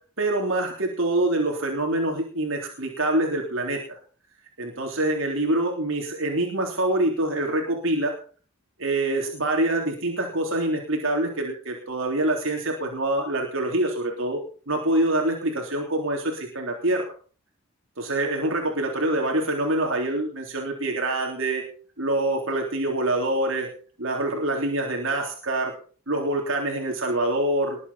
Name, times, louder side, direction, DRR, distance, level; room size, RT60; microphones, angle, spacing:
voice 1, 0.2-4.0 4.6-8.1 8.8-14.4 14.7-17.0 18.0-21.6 22.0-23.7 24.0-25.7 26.1-27.8, right 1 dB, 65° right, 1 dB, 3.5 m, -25 dB
21.5 x 8.5 x 5.7 m, 0.41 s
head